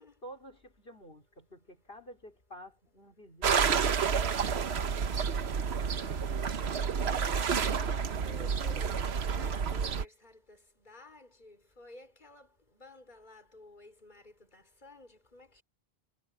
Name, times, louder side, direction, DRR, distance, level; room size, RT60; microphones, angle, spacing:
voice 1, 0.0-5.0, equal, 65° left, 5.2 m, -51 dB
sound 1, 3.4-10.0, right 6 dB, 90° right, 1.3 m, -30 dB
voice 2, 5.9-6.3 7.1-7.5 7.7-12.5 12.7-15.6, left 2 dB, 45° left, 4.9 m, -53 dB
omnidirectional pair, 1.1 m